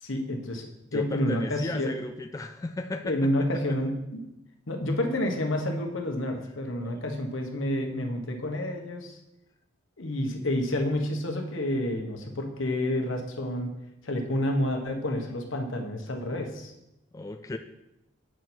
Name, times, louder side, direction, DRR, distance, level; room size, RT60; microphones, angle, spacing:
voice 1, 0.0-1.9 3.0-4.2 4.7-9.2 10.0-13.7 14.0-16.7, left 1 dB, 80° left, 3 dB, 1.3 m, -29 dB
voice 2, 0.9-3.3 3.7-3.8 6.8-7.0 17.1-17.6, left 2 dB, 15° left, 5 dB, 0.3 m, -35 dB
8.1 x 6.3 x 4.5 m, 0.90 s
head